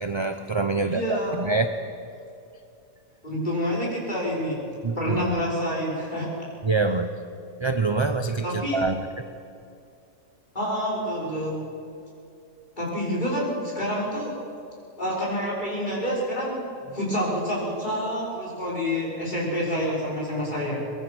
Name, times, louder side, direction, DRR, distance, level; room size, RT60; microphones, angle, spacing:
voice 1, 0.0-1.7 4.8-5.3 6.6-7.1 7.6-9.3, right 3 dB, 25° right, 8 dB, 0.7 m, -25 dB
voice 2, 0.7-1.4 3.2-4.6 4.9-6.3 8.4-8.8 10.5-11.6 12.8-14.3 15.0-16.6 16.9-20.8, equal, 30° left, -4 dB, 6.4 m, -27 dB
23.5 x 21.5 x 6.3 m, 2.6 s
omnidirectional pair, 1.5 m